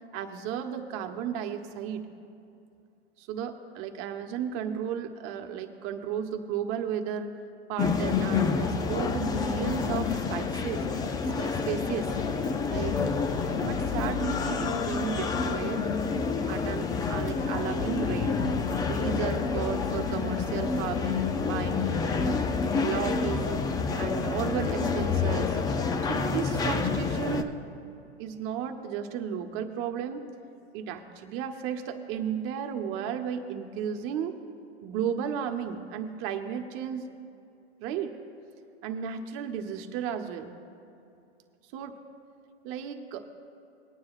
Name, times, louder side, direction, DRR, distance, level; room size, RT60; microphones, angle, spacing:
voice 1, 0.1-2.0 3.2-7.3 7.7-10.8 11.3-12.1 12.7-13.0 13.6-15.8 16.5-18.4 18.8-22.4 22.8-23.7 24.0-25.6 26.1-27.6 28.2-30.2 30.7-34.4 34.8-37.0 37.8-38.2 38.8-40.5 41.7-42.0 42.6-43.3, right 8 dB, 40° right, 5 dB, 1.1 m, -34 dB
sound 1, 7.8-27.4, left 5 dB, 10° left, 0.4 m, -28 dB
21.0 x 9.4 x 2.4 m, 2.6 s
hypercardioid pair, 120°, 33 cm